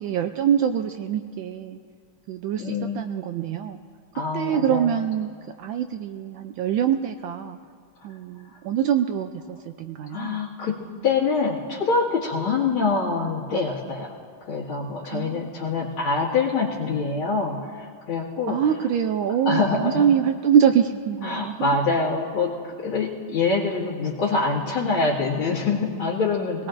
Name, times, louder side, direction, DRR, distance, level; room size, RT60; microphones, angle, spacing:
voice 1, 0.0-1.8 2.3-3.8 4.3-7.6 8.0-10.4 15.0-15.5 18.5-21.7, right 8 dB, 75° right, 7 dB, 1.2 m, -24 dB
voice 2, 2.6-3.0 4.1-4.9 10.1-10.8 11.0-14.1 14.5-18.6 19.4-20.1 21.2-26.7, left 4 dB, 90° left, -6 dB, 2.7 m, -25 dB
23.0 x 18.5 x 2.6 m, 2.1 s
omnidirectional pair, 2.3 m